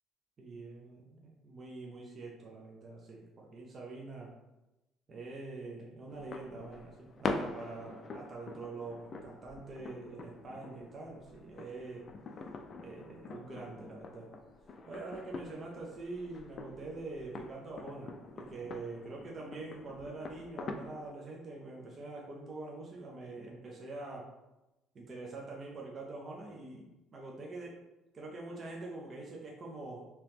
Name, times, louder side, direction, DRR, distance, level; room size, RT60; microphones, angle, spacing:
voice 1, 0.4-4.3 5.1-12.1 12.8-14.3 14.9-24.3 24.9-27.8 28.1-30.0, right 3 dB, 35° right, -2 dB, 0.6 m, -45 dB
sound 1, 6.1-21.1, left 3 dB, 40° left, 0.3 m, -44 dB
2.9 x 2.9 x 3.4 m, 0.97 s
cardioid pair, 135°, 0 cm